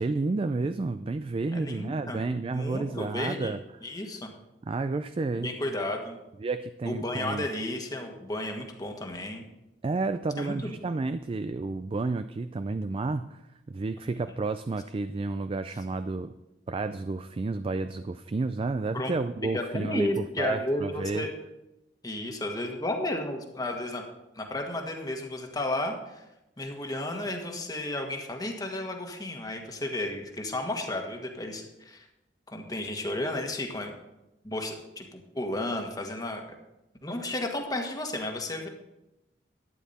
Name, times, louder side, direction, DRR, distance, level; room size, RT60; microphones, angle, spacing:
voice 1, 0.0-3.6 4.6-5.5 6.4-7.5 9.8-13.4 13.7-16.3 16.7-21.3, right 3 dB, 30° right, 11 dB, 0.3 m, -31 dB
voice 2, 1.5-2.2 2.5-3.5 3.8-4.3 5.3-6.2 6.8-9.4 10.4-10.8 18.9-19.1 19.5-21.3 22.0-24.0 24.3-26.2 26.6-32.1 32.5-33.9 34.4-36.4 37.0-38.7, left 1 dB, 20° left, 3 dB, 1.5 m, -33 dB
12.0 x 9.4 x 4.2 m, 0.94 s
head